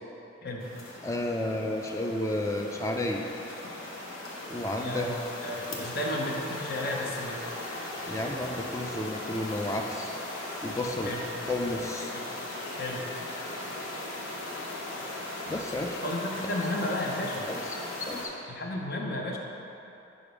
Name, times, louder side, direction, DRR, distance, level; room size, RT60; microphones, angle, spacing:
sound 1, 0.6-18.3, left 2 dB, 75° left, 0.9 m, -38 dB
voice 1, 1.0-3.2 4.5-5.1 5.7-5.9 8.1-10.1 10.6-11.1 11.5-12.1 15.5-16.0 17.5-17.6 18.0-18.3, left 1 dB, 15° left, 2 dB, 0.4 m, -32 dB
voice 2, 4.8-7.5 11.1-11.2 12.1-12.3 12.7-13.0 16.0-17.5 18.5-19.4, left 1 dB, 50° left, 0 dB, 0.7 m, -33 dB
5.2 x 5.0 x 5.0 m, 2.9 s
head